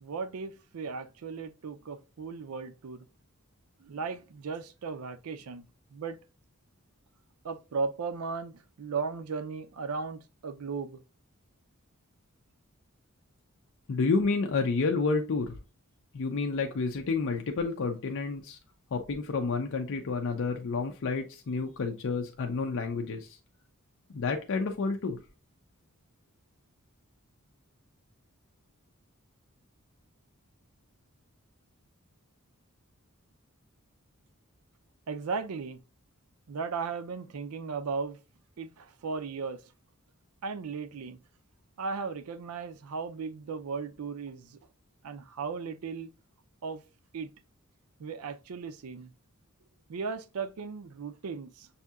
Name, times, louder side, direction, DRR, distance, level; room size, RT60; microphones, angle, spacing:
voice 1, 0.0-3.0 3.8-5.6 5.9-6.2 7.4-11.0 35.1-35.8 36.5-38.2 38.6-39.6 40.4-41.2 41.8-44.6 45.0-46.1 46.6-46.8 47.1-47.3 48.0-49.1 49.9-51.7, right 5 dB, 85° right, 0.5 m, -36 dB
voice 2, 13.9-15.6 16.1-18.6 18.9-23.4 24.1-25.2, left 4 dB, 65° left, 0.5 m, -30 dB
6.3 x 2.7 x 2.3 m
head